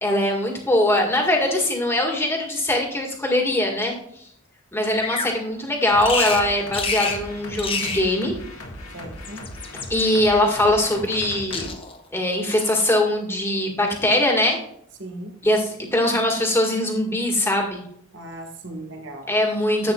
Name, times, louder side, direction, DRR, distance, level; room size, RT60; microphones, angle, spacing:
voice 1, 0.0-4.3 4.7-8.3 9.9-11.7 12.1-14.6 15.4-17.8 19.3-19.9, left 1 dB, 10° left, 0 dB, 1.8 m, -21 dB
Bird vocalization bird call bird song, 5.0-5.4 6.0-6.5 6.7-7.2 7.5-8.1 9.1-10.1 10.8-11.3 11.5-12.0 12.5-12.9, left 4 dB, 25° left, 0.9 m, -28 dB
sound 1, 5.9-11.7, left 1 dB, 90° left, 1.9 m, -38 dB
voice 2, 8.9-9.4 15.0-15.4 18.1-19.3, right 1 dB, 60° right, 4 dB, 1.4 m, -37 dB
11.0 x 8.2 x 2.4 m, 0.67 s
head